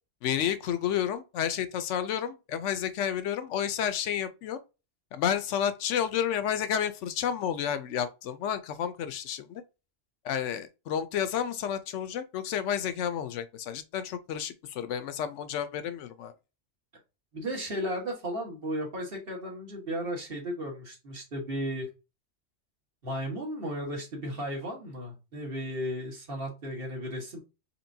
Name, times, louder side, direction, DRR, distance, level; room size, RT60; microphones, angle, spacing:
voice 1, 0.2-4.6 5.1-9.6 10.2-16.3, left 9 dB, 80° left, 0.9 m, -31 dB
voice 2, 17.3-21.9 23.0-27.4, equal, 50° right, 1.7 m, -35 dB
4.4 x 3.3 x 2.7 m
omnidirectional pair, 1.2 m